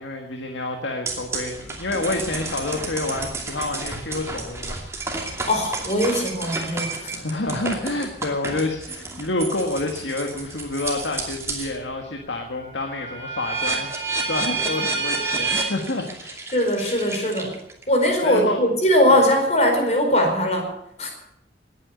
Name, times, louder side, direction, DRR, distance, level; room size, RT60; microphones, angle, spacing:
voice 1, 0.0-4.8 6.9-16.4 18.2-18.6, left 2 dB, 90° left, 2 dB, 1.8 m, -28 dB
sound 1, 1.1-11.8 12.2-17.8, right 3 dB, 15° right, 2.6 m, -30 dB
voice 2, 5.5-7.1 16.5-17.6 17.9-20.7 21.0-21.1, equal, 35° left, 3 dB, 4.7 m, -20 dB
19.5 x 9.3 x 8.1 m, 0.79 s
head